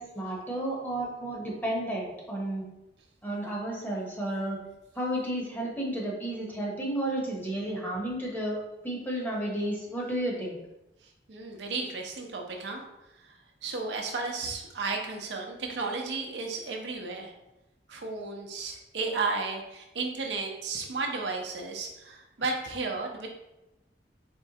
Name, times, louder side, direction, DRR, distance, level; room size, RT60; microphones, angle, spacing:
voice 1, 0.0-2.6 3.2-4.6 5.0-10.6, right 1 dB, 10° left, -3 dB, 0.9 m, -32 dB
voice 2, 11.3-12.8 13.2-13.4 13.6-17.3 17.9-23.3, right 3 dB, 80° right, 2 dB, 0.6 m, -33 dB
4.4 x 3.1 x 2.8 m, 0.96 s
head